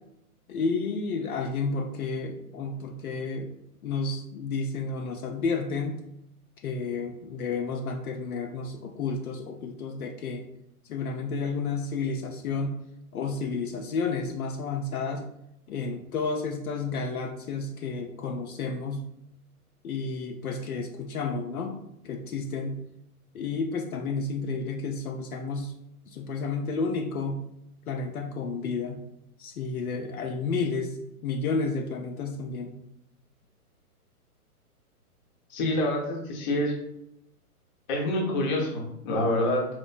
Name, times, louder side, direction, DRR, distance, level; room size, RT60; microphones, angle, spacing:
voice 1, 0.5-3.5 3.8-6.0 6.6-10.4 10.9-12.8 13.1-15.2 15.7-19.1 19.8-21.8 22.0-22.8 23.3-25.7 26.1-27.5 27.9-29.0 29.4-32.7, left 4 dB, 70° left, 2 dB, 0.6 m, -31 dB
voice 2, 35.5-36.7 37.9-39.7, left 1 dB, 30° left, -1 dB, 0.8 m, -27 dB
4.4 x 2.1 x 2.3 m, 0.78 s
hypercardioid pair, 135°, 46 cm